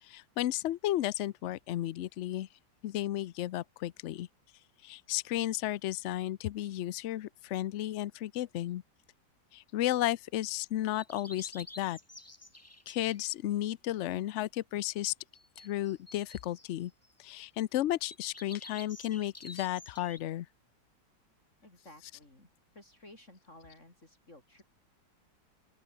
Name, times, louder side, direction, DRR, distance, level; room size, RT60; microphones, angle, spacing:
voice 1, 0.0-2.5 2.8-4.3 4.8-8.8 9.5-12.0 12.9-15.1 15.6-16.9 17.2-20.5 22.0-22.1, left 14 dB, 90° left, 0.6 m, -33 dB
sound 1, 10.9-13.2 15.3-17.1 18.0-20.2, left 2 dB, 10° left, 1.0 m, -50 dB
voice 2, 21.6-22.5 22.7-24.6, left 1 dB, 40° left, 5.6 m, -55 dB
open air
omnidirectional pair, 1.9 m